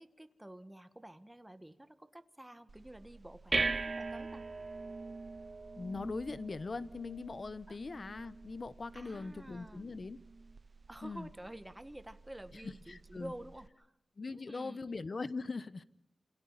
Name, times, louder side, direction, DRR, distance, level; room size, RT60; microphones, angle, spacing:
voice 1, 0.0-4.4 7.7-7.8 8.9-9.9 10.9-13.9 14.3-14.8, right 1 dB, 10° right, 10 dB, 1.7 m, -50 dB
sound 1, 2.7-13.7, right 3 dB, 45° right, 0.8 m, -42 dB
voice 2, 5.8-10.2 11.0-11.3 12.6-13.3 14.2-15.8, left 3 dB, 50° left, 15 dB, 1.2 m, -41 dB
29.0 x 27.5 x 4.2 m, 0.79 s
wide cardioid pair, 90°, 0 cm